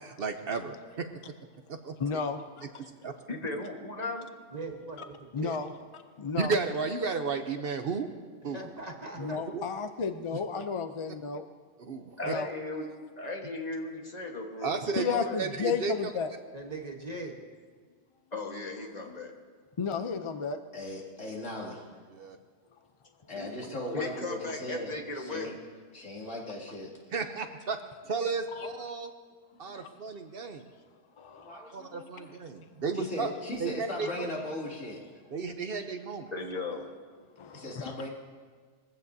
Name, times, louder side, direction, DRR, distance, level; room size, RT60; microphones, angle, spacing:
voice 1, 0.2-1.1 1.7-1.9 3.0-3.1 6.4-8.1 8.4-8.7 9.2-9.3 9.5-9.6 11.8-12.3 14.6-15.1 15.4-15.9 22.1-22.4 27.1-27.8 28.1-29.1 29.6-30.7 31.7-33.3 33.6-34.3 35.3-36.3, right 4 dB, 55° right, 7 dB, 0.9 m, -33 dB
voice 2, 2.0-2.4 5.3-5.7 6.2-6.6 9.2-11.4 12.3-12.5 15.0-16.3 19.8-20.6 28.5-28.7 29.7-29.9 31.2-31.6 37.4-38.1, left 5 dB, 50° left, 8 dB, 0.3 m, -33 dB
voice 3, 3.3-4.3 12.2-15.4 18.3-19.3 23.3-25.5 36.3-36.9, left 2 dB, 35° left, 1 dB, 1.5 m, -37 dB
voice 4, 4.5-5.0 5.4-5.5 8.4-9.4 16.5-17.4, right 2 dB, 35° right, 1 dB, 1.2 m, -40 dB
voice 5, 20.7-21.8 23.3-25.5 25.9-26.9 29.7-29.8 31.4-32.3 32.9-35.0 37.5-38.1, left 1 dB, 80° left, -3 dB, 3.0 m, -38 dB
21.5 x 15.5 x 2.7 m, 1.5 s
omnidirectional pair, 1.3 m